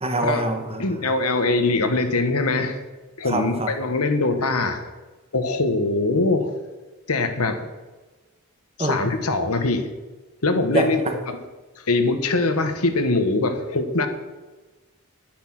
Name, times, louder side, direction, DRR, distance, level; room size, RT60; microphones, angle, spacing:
voice 1, 0.0-0.8 3.2-3.7 8.8-9.0 10.7-11.1, right 2 dB, 25° right, 5 dB, 1.5 m, -24 dB
voice 2, 0.8-2.8 3.2-4.9 5.3-6.5 7.1-7.7 8.8-9.9 10.4-11.4 11.9-14.1, left 3 dB, 80° left, 7 dB, 1.5 m, -22 dB
11.0 x 10.5 x 6.1 m, 1.2 s
head